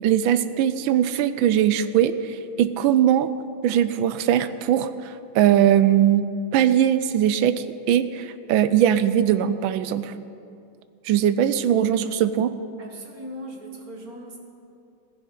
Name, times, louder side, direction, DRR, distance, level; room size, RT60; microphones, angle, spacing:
voice 1, 0.0-3.3 3.6-10.1 11.0-12.5, right 10 dB, 75° right, 13 dB, 1.3 m, -20 dB
voice 2, 12.8-14.4, right 1 dB, 45° right, 2 dB, 1.9 m, -38 dB
15.5 x 15.0 x 3.9 m, 2.5 s
omnidirectional pair, 2.3 m